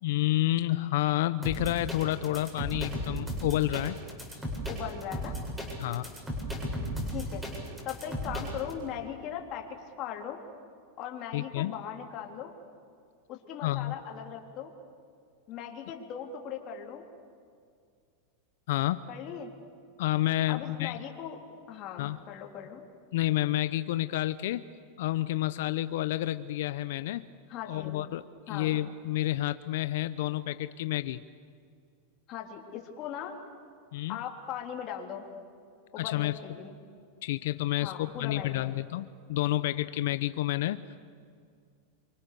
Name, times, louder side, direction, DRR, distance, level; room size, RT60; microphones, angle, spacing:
voice 1, 0.0-4.0 5.8-6.1 11.3-11.7 13.6-13.9 18.7-19.0 20.0-21.0 22.0-22.2 23.1-24.6 25.0-27.3 27.7-31.2 33.9-34.2 36.0-36.4 37.2-40.8, left 15 dB, 70° left, 13 dB, 0.7 m, -29 dB
sound 1, 1.4-8.7, equal, 10° right, 7.9 m, -35 dB
voice 2, 4.7-5.4 7.1-7.4 7.8-9.7 10.0-10.4 11.0-12.5 13.3-14.7 15.5-17.1 19.1-19.5 20.5-21.4 21.7-22.8 27.5-28.0 28.5-28.7 32.3-33.4 34.1-35.2 35.9-36.8 37.8-38.6, left 9 dB, 40° left, 1 dB, 3.7 m, -39 dB
28.5 x 25.0 x 6.9 m, 2.2 s
supercardioid pair, 135°, 0 cm